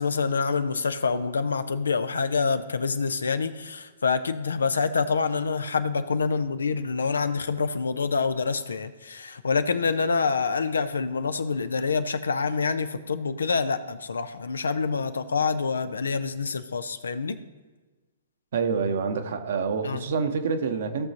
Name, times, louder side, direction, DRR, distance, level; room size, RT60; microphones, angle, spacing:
voice 1, 0.0-17.4 19.8-20.0, left 5 dB, 80° left, 12 dB, 0.6 m, -26 dB
voice 2, 18.5-21.1, right 5 dB, 60° right, 7 dB, 1.0 m, -27 dB
16.0 x 6.4 x 2.9 m, 1.3 s
hypercardioid pair, 120°, 0 cm